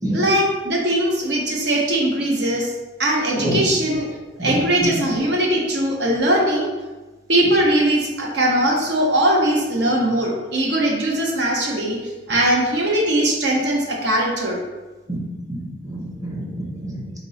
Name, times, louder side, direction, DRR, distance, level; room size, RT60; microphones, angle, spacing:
voice 1, 0.1-2.7 3.0-4.1 4.4-6.7 7.3-12.0 12.3-14.6, right 1 dB, 75° right, -1 dB, 0.8 m, -20 dB
voice 2, 4.4-4.9 15.1-17.1, equal, 20° right, -1 dB, 0.7 m, -27 dB
3.9 x 2.9 x 3.9 m, 1.2 s
head